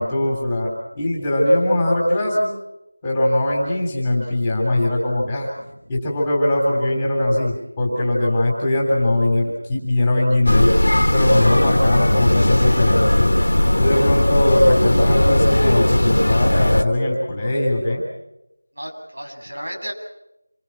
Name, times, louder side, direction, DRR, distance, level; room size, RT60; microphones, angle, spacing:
voice 1, 0.0-2.5 3.0-5.5 5.9-10.7 11.1-13.3 13.7-18.0, left 1 dB, 10° left, -3 dB, 3.4 m, -20 dB
sound 1, 10.5-16.8, left 1 dB, 80° left, 1.8 m, -17 dB
voice 2, 18.8-19.9, equal, 80° right, 3 dB, 7.9 m, -33 dB
28.0 x 24.0 x 6.1 m, 0.89 s
figure-of-eight pair, 180°, 0 cm